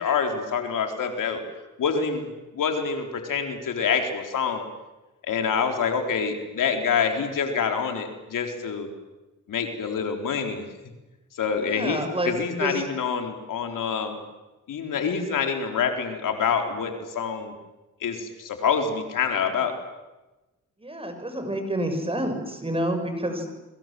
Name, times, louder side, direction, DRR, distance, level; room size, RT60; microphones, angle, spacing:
voice 1, 0.0-1.4 1.8-2.3 2.5-4.6 5.3-8.9 9.5-10.7 11.3-14.2 14.7-17.5 18.0-19.7, left 6 dB, 80° left, 4 dB, 4.1 m, -26 dB
voice 2, 11.6-12.3 12.6-12.8 20.8-23.5, right 1 dB, 15° right, 6 dB, 6.7 m, -28 dB
30.0 x 23.5 x 7.8 m, 1.1 s
cardioid pair, 90°, 32 cm